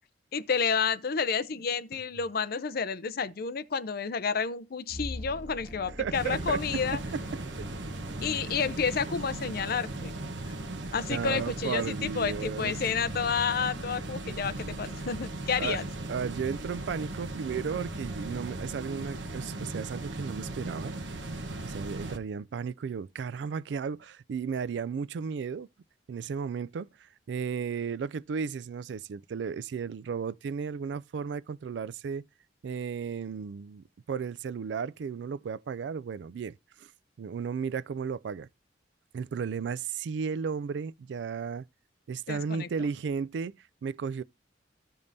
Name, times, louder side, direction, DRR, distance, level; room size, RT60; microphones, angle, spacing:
voice 1, 0.3-7.0 8.2-10.2 10.9-15.8 42.3-42.7, left 6 dB, 55° left, 0.6 m, -30 dB
sound 1, 4.9-14.9 15.1-15.4, left 1 dB, 20° right, 1.9 m, -46 dB
voice 2, 5.9-6.8 7.1-7.2 8.3-8.4 11.1-12.8 15.6-15.8 16.1-20.9 21.6-25.7 26.1-32.2 32.6-36.9 37.2-38.5 39.1-41.7 42.1-44.2, right 6 dB, 70° right, 0.3 m, -34 dB
sound 2, 6.1-22.2, right 2 dB, 85° right, 1.1 m, -37 dB
14.5 x 5.3 x 2.7 m
head